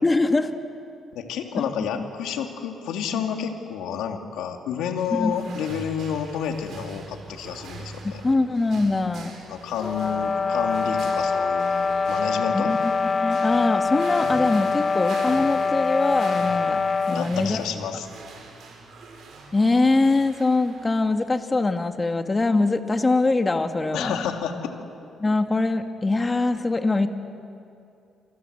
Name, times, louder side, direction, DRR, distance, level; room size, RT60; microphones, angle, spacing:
voice 1, 0.0-0.5 1.6-1.7 5.1-5.3 8.0-9.3 12.5-17.6 19.5-24.2 25.2-27.1, left 3 dB, 25° left, 6 dB, 2.0 m, -23 dB
voice 2, 1.1-8.2 9.5-12.7 17.1-18.1 23.9-24.7, left 8 dB, 90° left, 4 dB, 2.5 m, -30 dB
sound 1, 5.0-21.1, right 3 dB, 70° right, 6.0 m, -43 dB
sound 2, 9.8-17.3, left 4 dB, 40° left, 1.2 m, -24 dB
29.0 x 24.0 x 8.1 m, 2.5 s
cardioid pair, 90°, 0 cm